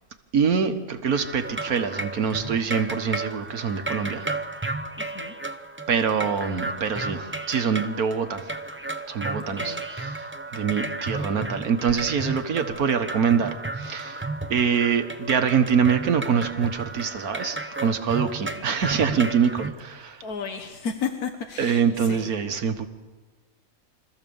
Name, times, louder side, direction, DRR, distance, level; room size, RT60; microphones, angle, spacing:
voice 1, 0.3-4.3 5.9-8.6 9.1-14.2 14.5-20.2 21.6-22.9, right 6 dB, 85° right, 7 dB, 1.8 m, -25 dB
sound 1, 1.1-19.7, right 2 dB, 10° right, 0.6 m, -33 dB
voice 2, 5.0-5.3 9.5-9.9 20.2-22.3, left 6 dB, 90° left, 5 dB, 1.7 m, -33 dB
25.5 x 14.5 x 7.1 m, 1.4 s
omnidirectional pair, 1.5 m